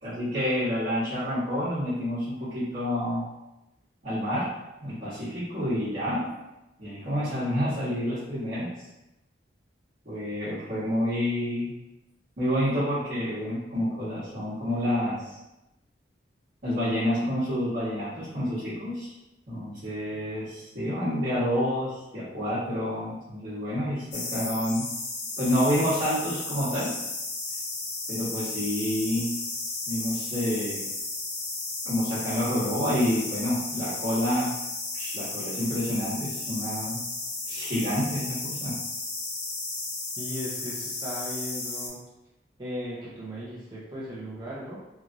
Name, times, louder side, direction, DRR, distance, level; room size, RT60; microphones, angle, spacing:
voice 1, 0.0-3.3 4.0-4.5 4.8-6.3 6.8-8.7 10.0-11.7 12.4-15.4 16.6-19.1 19.5-24.9 25.4-26.9 28.1-29.3 29.9-30.8 31.8-34.5 34.9-37.0 37.5-38.8, equal, 55° right, -13 dB, 1.1 m, -28 dB
sound 1, 24.1-41.9, left 3 dB, 85° left, 0.8 m, -34 dB
voice 2, 40.2-42.0 42.6-44.8, equal, 25° right, -8 dB, 0.5 m, -37 dB
3.0 x 2.4 x 2.5 m, 0.95 s
head